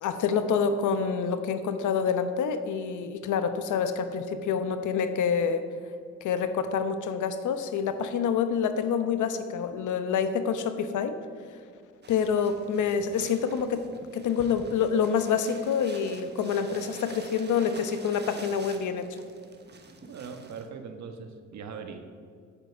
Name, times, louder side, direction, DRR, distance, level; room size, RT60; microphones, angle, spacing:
voice 1, 0.0-5.6 6.2-11.2 12.1-13.8 14.1-19.1, left 6 dB, 75° left, 9 dB, 1.0 m, -27 dB
sound 1, 12.0-20.7, right 4 dB, 35° right, 1.3 m, -48 dB
voice 2, 20.1-22.0, right 5 dB, 65° right, 6 dB, 1.4 m, -40 dB
8.8 x 8.2 x 7.3 m, 2.1 s
cardioid pair, 90°, 30 cm